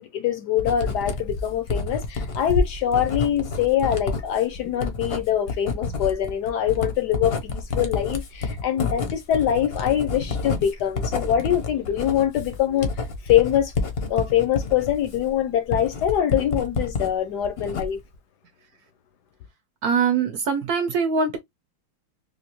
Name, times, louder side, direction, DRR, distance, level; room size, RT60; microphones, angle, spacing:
voice 1, 0.0-12.9 13.2-13.7 14.1-18.0, left 10 dB, 70° left, 1.1 m, -24 dB
Writing, 0.6-17.1 17.4-18.2, left 3 dB, 50° left, 0.7 m, -29 dB
voice 2, 19.8-21.4, right 5 dB, 65° right, 1.0 m, -22 dB
3.8 x 2.6 x 2.8 m
omnidirectional pair, 2.1 m